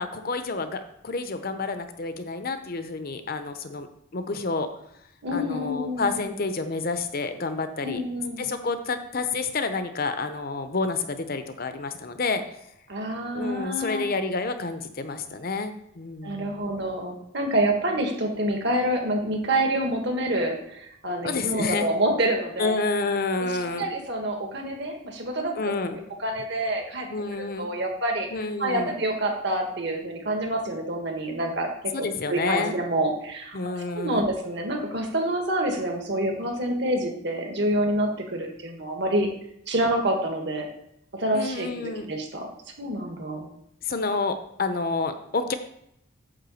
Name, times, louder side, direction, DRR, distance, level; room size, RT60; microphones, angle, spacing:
voice 1, 0.0-3.9 4.1-4.7 5.3-8.0 8.4-12.4 13.3-16.7 21.2-21.9 22.6-23.9 25.6-26.0 27.1-27.7 28.3-28.9 31.9-32.7 33.5-34.3 41.3-42.1 43.8-45.5, left 3 dB, 45° left, 9 dB, 0.7 m, -29 dB
voice 2, 5.2-6.2 7.8-8.4 12.9-14.1 16.2-22.8 23.8-28.3 28.6-31.9 32.3-39.3 39.7-40.7 41.1-42.5 42.8-43.5, right 1 dB, 55° right, 2 dB, 1.6 m, -27 dB
9.1 x 3.7 x 7.0 m, 0.77 s
head